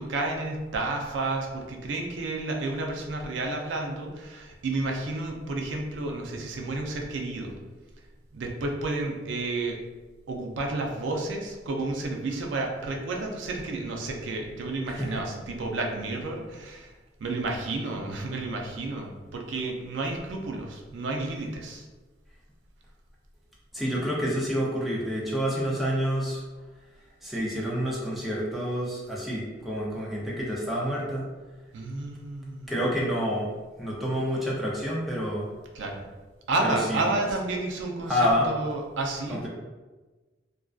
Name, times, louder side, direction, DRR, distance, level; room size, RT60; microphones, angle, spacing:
voice 1, 0.0-7.5 8.3-9.8 10.3-16.9 17.2-21.9 31.7-32.7 35.7-36.0 36.5-39.5, right 2 dB, 80° right, 1 dB, 0.4 m, -31 dB
voice 2, 23.7-26.4 27.2-31.3 32.7-33.5 33.8-35.5 36.6-37.1 38.1-38.5 39.3-39.5, equal, ahead, -6 dB, 0.4 m, -28 dB
2.4 x 2.2 x 2.3 m, 1.3 s
head